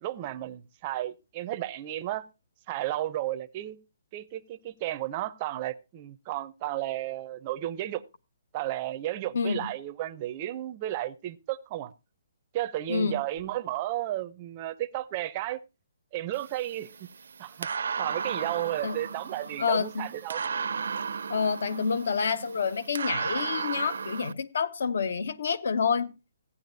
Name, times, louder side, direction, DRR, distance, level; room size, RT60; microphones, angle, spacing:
voice 1, 0.0-2.3 2.7-3.8 4.1-8.0 8.5-11.9 12.5-15.6 16.1-17.1 17.4-17.7 18.0-20.4, right 14 dB, 25° right, 0.5 m, -33 dB
voice 2, 9.3-9.7 12.9-13.2 18.8-19.0 19.6-20.1 21.3-26.1, left 6 dB, 65° left, 0.8 m, -28 dB
sound 1, 16.3-24.3, right 6 dB, 75° right, 0.5 m, -35 dB
15.0 x 9.8 x 2.6 m
hypercardioid pair, 175°, 0 cm